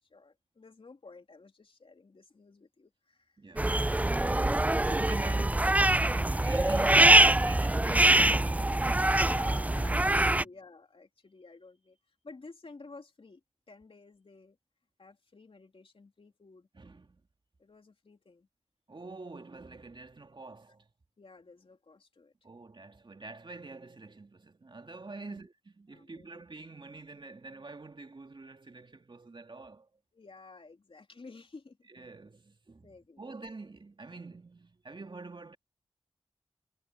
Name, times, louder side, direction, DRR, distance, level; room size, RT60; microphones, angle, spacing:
voice 1, 0.0-3.7 9.1-14.6 15.0-16.7 17.6-18.5 21.2-22.3 25.2-25.5 25.9-26.3 30.1-31.9 32.8-33.3, left 3 dB, 60° left, 3.2 m, -53 dB
voice 2, 3.4-4.0 4.8-9.4 16.7-17.2 18.9-20.9 22.4-29.9 31.9-32.9 33.2-35.6, right 3 dB, 50° right, 2.3 m, -46 dB
sound 1, 3.6-10.4, right 1 dB, 15° right, 0.4 m, -24 dB
cardioid pair, 45°, 10 cm